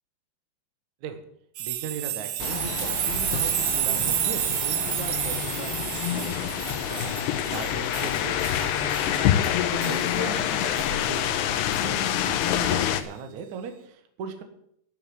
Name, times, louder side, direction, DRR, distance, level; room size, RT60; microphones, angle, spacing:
voice 1, 1.6-9.3 9.7-11.5 11.8-14.4, right 6 dB, 60° right, 7 dB, 2.2 m, -39 dB
sound 1, 1.6-10.2 10.8-10.9 11.7-11.8, right 12 dB, 80° right, 3.0 m, -30 dB
sound 2, 2.4-13.0, left 10 dB, 85° left, 3.0 m, -27 dB
11.5 x 7.1 x 9.6 m, 0.71 s
omnidirectional pair, 4.9 m